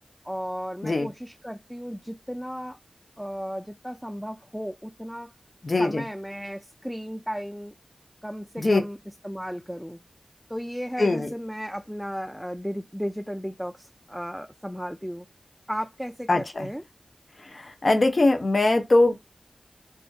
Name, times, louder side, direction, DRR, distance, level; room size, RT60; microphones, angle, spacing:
voice 1, 0.2-2.8 3.2-5.3 5.8-7.7 8.2-9.0 9.2-10.0 10.5-15.3 15.7-16.8, equal, ahead, 0.3 m, -34 dB
voice 2, 5.6-6.0 8.6-8.8 11.0-11.3 16.3-16.7 17.4-19.2, left 2 dB, 55° left, 0.6 m, -22 dB
2.5 x 2.4 x 2.2 m
cardioid pair, 50°, 0 cm